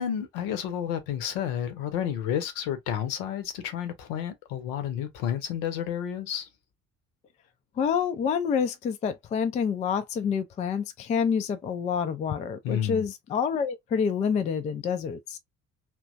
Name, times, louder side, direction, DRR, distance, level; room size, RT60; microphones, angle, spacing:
voice 1, 0.0-6.5 12.6-13.1, left 9 dB, 60° left, 0.8 m, -31 dB
voice 2, 7.8-15.4, left 6 dB, 20° left, 0.3 m, -27 dB
2.8 x 2.2 x 2.5 m
figure-of-eight pair, 50°, 39 cm